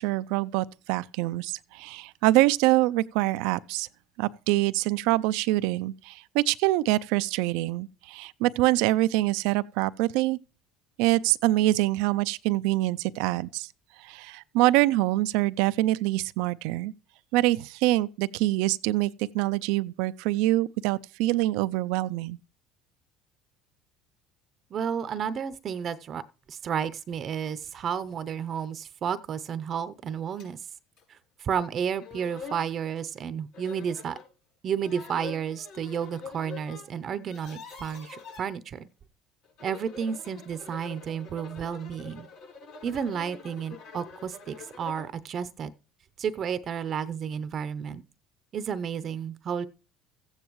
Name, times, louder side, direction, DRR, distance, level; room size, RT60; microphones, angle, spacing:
voice 1, 0.0-3.9 4.2-10.4 11.0-13.7 14.0-16.9 17.3-22.4, right 17 dB, 75° right, 0.4 m, -25 dB
voice 2, 24.7-26.2 26.5-30.7 31.1-34.2 34.6-38.9 39.6-42.3 42.8-45.7 46.2-48.0 48.5-49.7, right 7 dB, 45° right, 0.7 m, -32 dB
sound 1, 30.4-30.5 31.0-31.1 31.7-31.8 32.0-32.7 33.5-34.3 34.8-36.9 37.1-38.4 39.4-45.1, left 5 dB, 75° left, 6.4 m, -45 dB
14.5 x 9.0 x 3.1 m
supercardioid pair, 100°, 0 cm